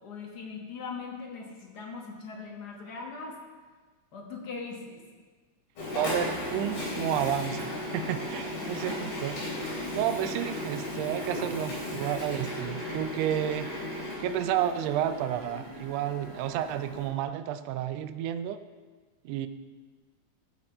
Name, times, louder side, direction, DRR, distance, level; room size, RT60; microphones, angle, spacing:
voice 1, 0.0-3.4 4.1-5.0 8.3-8.4 9.8-10.0, left 4 dB, 50° left, -1 dB, 1.2 m, -40 dB
Printer, 5.8-17.0, left 1 dB, 70° left, 5.0 m, -36 dB
voice 2, 5.9-9.4 9.9-13.7 14.2-18.6 19.2-19.5, right 11 dB, 85° right, 10 dB, 1.4 m, -31 dB
14.5 x 5.9 x 4.4 m, 1.4 s
omnidirectional pair, 3.5 m